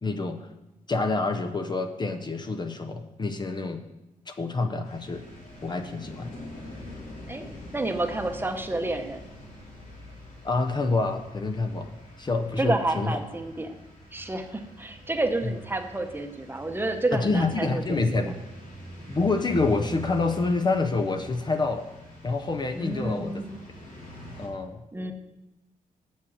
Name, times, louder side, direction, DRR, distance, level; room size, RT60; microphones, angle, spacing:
voice 1, 0.0-0.5 0.9-3.8 4.3-5.2 5.6-6.3 10.4-11.9 12.2-13.2 17.1-18.4 19.1-21.9 22.2-23.4 24.4-24.8, left 3 dB, 30° left, 6 dB, 0.6 m, -27 dB
sound 1, 4.8-24.5, equal, 70° left, 3.7 m, -44 dB
voice 2, 7.3-9.2 12.6-13.8 14.1-18.3 22.7-23.6 24.9-25.1, right 2 dB, 15° right, 5 dB, 0.9 m, -30 dB
7.6 x 7.3 x 7.3 m, 0.96 s
wide cardioid pair, 135°, 15 cm